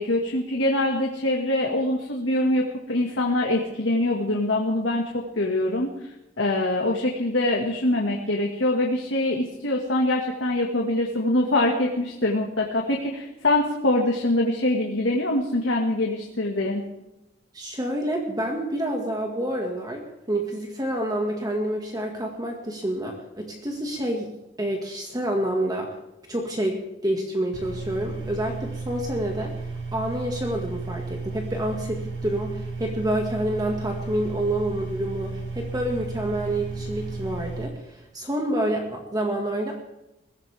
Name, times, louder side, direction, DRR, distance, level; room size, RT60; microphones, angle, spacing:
voice 1, 0.0-5.9 6.4-16.8, left 1 dB, 85° left, 0 dB, 2.0 m, -24 dB
voice 2, 17.5-24.3 24.6-25.9 26.3-29.5 29.9-39.7, right 1 dB, 20° right, 1 dB, 1.9 m, -28 dB
sound 1, 27.5-37.7, right 3 dB, 70° right, 2.7 m, -34 dB
22.0 x 15.5 x 3.6 m, 0.93 s
head